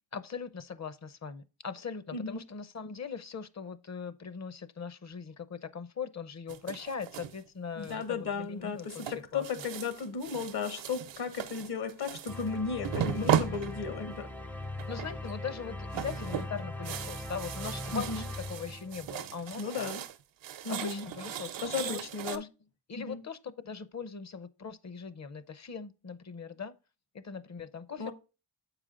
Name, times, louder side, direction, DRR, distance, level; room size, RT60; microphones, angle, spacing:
voice 1, 0.1-9.5 13.5-13.8 14.9-19.9 20.7-22.0 22.3-22.5 22.9-26.7 27.1-28.1, left 6 dB, 40° left, 0.7 m, -40 dB
sound 1, 6.5-7.4 7.8-8.3 8.9-12.5 12.8-14.3 14.8-15.3 15.6-20.2 20.4-22.4, right 10 dB, 80° right, 0.7 m, -36 dB
voice 2, 7.8-14.3 17.9-18.2 19.6-20.0 20.6-21.1 21.6-22.4 23.0-23.2 28.0-28.1, left 5 dB, 60° left, 1.3 m, -35 dB
sound 2, 12.3-19.3, left 2 dB, 5° left, 0.4 m, -40 dB
7.3 x 4.9 x 3.8 m
cardioid pair, 60°, 44 cm